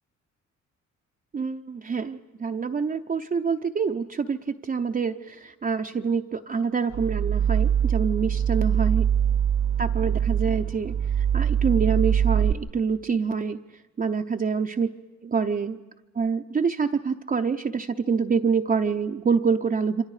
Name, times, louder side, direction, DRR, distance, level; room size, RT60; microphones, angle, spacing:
voice 1, 1.3-9.1 9.8-13.6 14.0-14.9 15.2-15.8 16.1-20.0, right 5 dB, 30° right, 5 dB, 0.7 m, -26 dB
sound 1, 6.9-12.5, right 9 dB, 70° right, 1.2 m, -23 dB
27.5 x 24.5 x 4.9 m, 1.1 s
cardioid pair, 90°, 30 cm